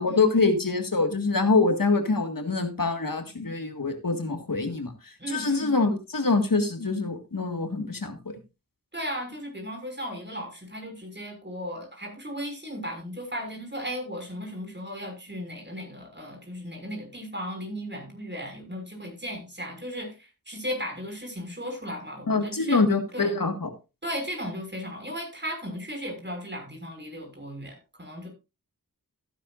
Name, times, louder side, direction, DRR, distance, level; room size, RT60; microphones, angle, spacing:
voice 1, 0.0-8.4 22.3-23.7, left 3 dB, 65° left, 6 dB, 1.9 m, -25 dB
voice 2, 5.2-5.8 8.9-23.3 24.0-28.3, equal, 30° right, 3 dB, 5.9 m, -36 dB
15.5 x 10.0 x 2.6 m, 0.28 s
wide cardioid pair, 50°, 36 cm